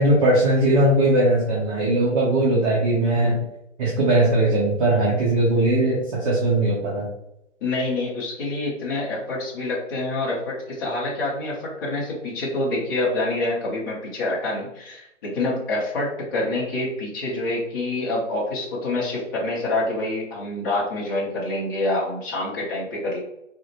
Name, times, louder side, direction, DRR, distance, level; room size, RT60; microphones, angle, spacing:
voice 1, 0.0-3.4 3.8-7.1, right 1 dB, 30° right, -5 dB, 0.7 m, -19 dB
voice 2, 7.6-23.2, left 2 dB, 20° left, -6 dB, 0.6 m, -26 dB
4.0 x 2.1 x 2.7 m, 0.84 s
hypercardioid pair, 140°, 37 cm